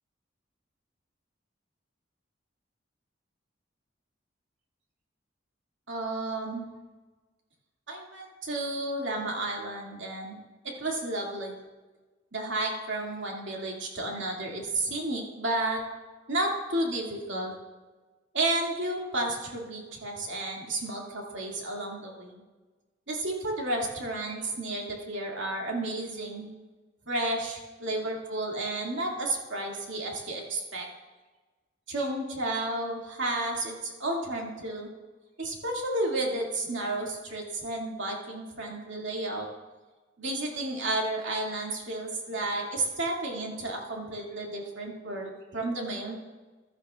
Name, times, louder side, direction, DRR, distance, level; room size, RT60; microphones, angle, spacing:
voice 1, 5.9-6.7 7.9-10.4 10.6-11.5 12.3-15.8 16.3-17.6 18.3-22.4 23.1-26.5 27.1-30.9 31.9-34.9 35.4-39.5 40.2-46.1, right 2 dB, 75° right, -2 dB, 2.4 m, -32 dB
15.0 x 12.0 x 2.5 m, 1.3 s
head